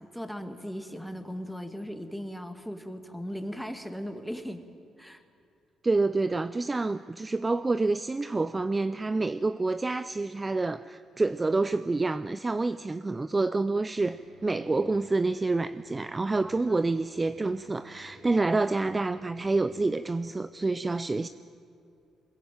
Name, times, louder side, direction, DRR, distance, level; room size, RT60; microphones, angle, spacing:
voice 1, 0.0-4.6 5.0-5.2 16.4-16.8, equal, ahead, 6 dB, 2.0 m, -38 dB
voice 2, 5.8-21.3, right 3 dB, 20° right, 13 dB, 0.6 m, -28 dB
sound 1, 14.0-20.4, right 2 dB, 80° right, 6.7 m, -55 dB
22.5 x 21.0 x 9.2 m, 2.5 s
cardioid pair, 90°, 0 cm